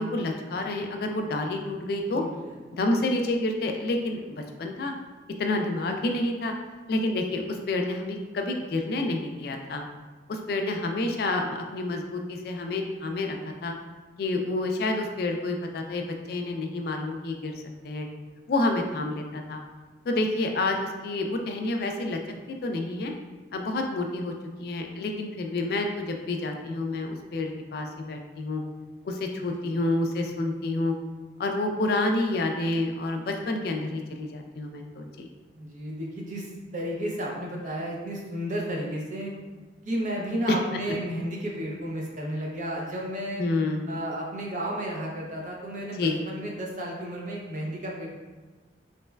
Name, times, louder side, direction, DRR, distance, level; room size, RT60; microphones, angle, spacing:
voice 1, 0.0-2.2 2.8-4.9 5.4-6.5 6.9-9.8 10.3-13.4 13.6-13.7 14.2-18.1 18.5-19.6 20.1-22.2 22.5-23.1 23.5-24.3 24.6-28.6 29.0-30.9 31.4-35.3 43.4-43.9 46.0-46.2, left 2 dB, 55° left, 4 dB, 0.3 m, -29 dB
voice 2, 2.1-2.6 29.6-29.7 35.6-39.3 39.8-43.4 43.9-48.1, equal, 40° right, -2 dB, 0.5 m, -33 dB
3.2 x 3.0 x 2.2 m, 1.3 s
head